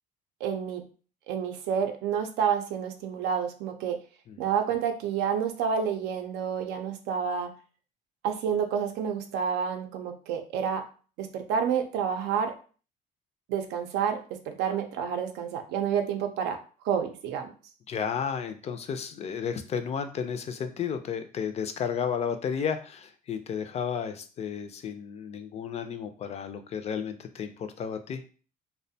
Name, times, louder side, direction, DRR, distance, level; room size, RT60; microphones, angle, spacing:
voice 1, 0.4-0.8 1.3-4.0 4.4-7.5 8.2-10.9 11.2-12.5 13.5-14.2 14.5-16.6 16.8-17.5, right 7 dB, 90° right, 6 dB, 0.5 m, -29 dB
voice 2, 17.9-28.2, left 7 dB, 40° left, 9 dB, 0.4 m, -32 dB
2.4 x 2.1 x 2.6 m, 0.38 s
cardioid pair, 110°, 17 cm